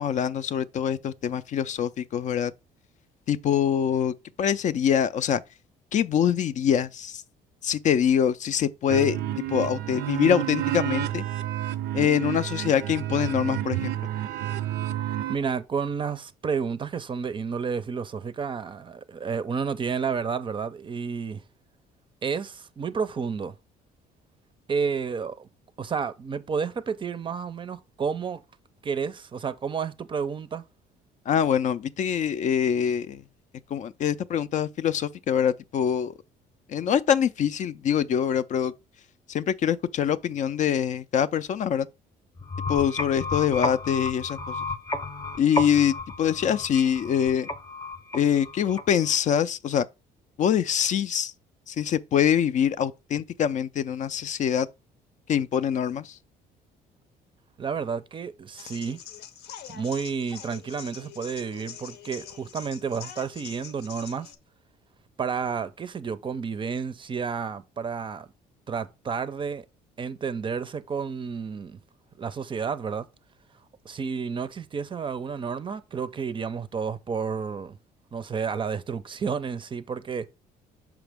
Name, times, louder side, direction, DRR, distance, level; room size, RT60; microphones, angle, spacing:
voice 1, 0.0-2.5 3.3-5.4 5.9-7.2 7.6-9.2 9.5-11.2 11.9-13.9 31.3-33.2 33.7-36.1 36.7-38.7 39.3-41.9 42.7-44.6 45.4-47.5 48.1-49.9 50.4-51.3 51.7-54.7 55.3-56.2, left 8 dB, 45° left, 0.4 m, -24 dB
sound 1, 8.9-15.4, right 13 dB, 80° right, 0.5 m, -30 dB
voice 2, 15.3-21.4 22.2-23.5 24.7-25.5 25.8-28.4 28.8-30.6 57.6-59.0 59.7-64.3 65.2-68.3 68.7-69.6 70.0-71.8 72.2-73.1 73.8-77.8 78.1-80.3, right 6 dB, 30° right, 0.5 m, -31 dB
sound 2, 42.4-49.2, left 2 dB, 20° left, 0.7 m, -33 dB
sound 3, 58.6-64.4, left 9 dB, 80° left, 0.8 m, -44 dB
5.9 x 5.0 x 3.4 m
cardioid pair, 110°, 17 cm